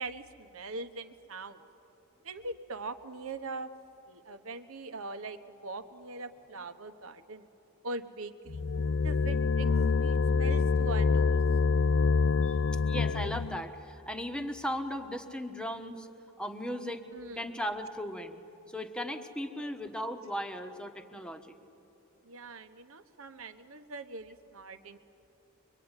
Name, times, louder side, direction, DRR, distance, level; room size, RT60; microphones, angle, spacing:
voice 1, 0.0-1.6 2.2-3.7 4.1-7.5 7.8-8.6 9.0-11.4 17.1-17.5 19.5-19.7 22.2-25.0, right 3 dB, 70° right, 9 dB, 1.2 m, -42 dB
sound 1, 8.5-13.6, left 5 dB, 60° left, 0.5 m, -26 dB
voice 2, 12.8-16.1 16.4-17.0 17.4-18.4 18.7-21.5, equal, 5° left, 7 dB, 1.2 m, -37 dB
24.0 x 23.5 x 9.8 m, 2.9 s
head